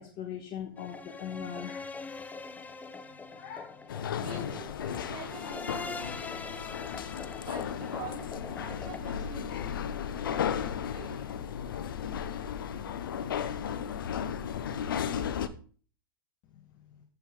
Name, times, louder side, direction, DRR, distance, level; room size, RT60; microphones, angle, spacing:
voice 1, 0.0-1.9 3.3-3.7, left 8 dB, 45° left, 3 dB, 1.5 m, -40 dB
sound 1, 0.8-9.0, left 4 dB, 15° left, 0.9 m, -43 dB
sound 2, 3.9-15.5, left 8 dB, 75° left, 0.8 m, -35 dB
voice 2, 4.2-6.5 7.4-8.2 8.6-9.7 10.1-11.3, right 6 dB, 35° right, -4 dB, 3.9 m, -46 dB
13.0 x 7.6 x 3.8 m, 0.43 s
hypercardioid pair, 100°, 11 cm